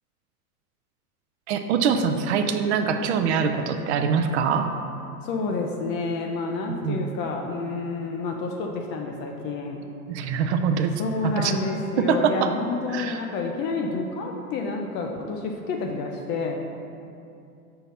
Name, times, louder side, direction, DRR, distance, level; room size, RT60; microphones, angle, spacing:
voice 1, 1.5-4.7 6.8-7.1 10.1-10.9 11.2-11.6 12.0-12.5 12.9-13.2, right 6 dB, 50° right, 7 dB, 0.5 m, -23 dB
voice 2, 5.2-9.8 11.0-16.5, left 3 dB, 25° left, 2 dB, 0.4 m, -29 dB
5.7 x 4.0 x 5.6 m, 2.6 s
hypercardioid pair, 95°, 45 cm